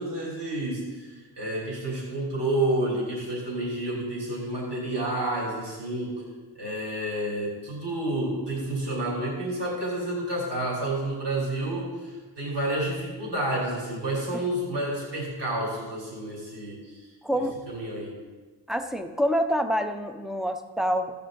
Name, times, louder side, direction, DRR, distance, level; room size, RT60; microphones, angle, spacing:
voice 1, 0.0-17.1 17.4-18.1, right 1 dB, 65° right, -3 dB, 3.3 m, -30 dB
voice 2, 17.2-17.6 18.7-21.1, equal, ahead, 7 dB, 0.7 m, -27 dB
13.5 x 8.6 x 3.8 m, 1.3 s
wide cardioid pair, 85°, 46 cm